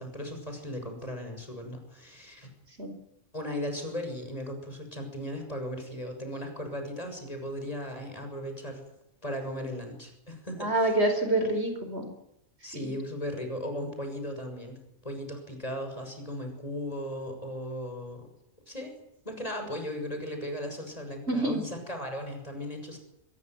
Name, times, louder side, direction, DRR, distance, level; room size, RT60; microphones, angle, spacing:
voice 1, 0.0-2.5 3.3-8.8 9.2-11.0 12.6-18.3 18.7-19.0 19.3-23.0, equal, 25° left, 5 dB, 6.9 m, -37 dB
voice 2, 10.6-12.1 12.7-12.8 21.3-21.6, right 2 dB, 55° right, 6 dB, 4.9 m, -26 dB
23.5 x 21.0 x 9.4 m, 0.83 s
omnidirectional pair, 1.4 m